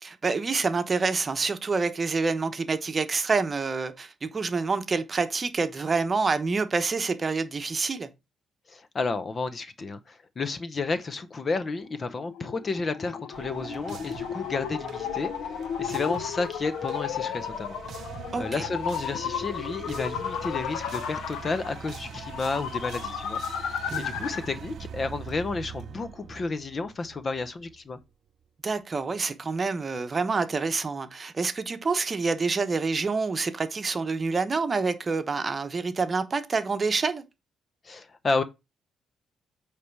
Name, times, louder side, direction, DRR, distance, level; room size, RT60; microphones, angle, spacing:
voice 1, 0.0-8.1 18.3-18.7 23.9-24.1 28.6-37.2, right 4 dB, 35° right, 1.0 m, -27 dB
voice 2, 8.7-17.8 18.4-23.4 23.7-28.0 37.8-38.4, left 3 dB, 35° left, 0.7 m, -31 dB
sound 1, 11.9-24.6, left 8 dB, 85° left, 0.8 m, -34 dB
sound 2, 13.3-28.0, right 8 dB, 60° right, 0.6 m, -43 dB
8.4 x 3.4 x 4.7 m
cardioid pair, 90°, 0 cm